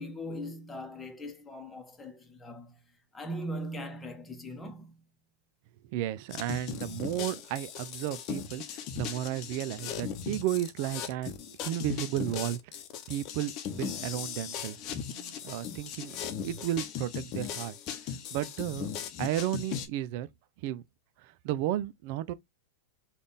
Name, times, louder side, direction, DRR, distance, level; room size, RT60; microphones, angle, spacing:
voice 1, 0.0-2.8 3.1-5.0, equal, 15° left, 1.0 m, -40 dB
voice 2, 5.8-12.6 13.1-14.8 15.1-16.2 16.4-17.8 18.3-18.9 19.2-20.3 20.6-20.8 21.2-22.3, right 13 dB, 55° right, 0.4 m, -33 dB
sound 1, 6.3-19.9, left 8 dB, 45° left, 0.8 m, -38 dB
3.4 x 2.4 x 4.0 m
hypercardioid pair, 115°, 0 cm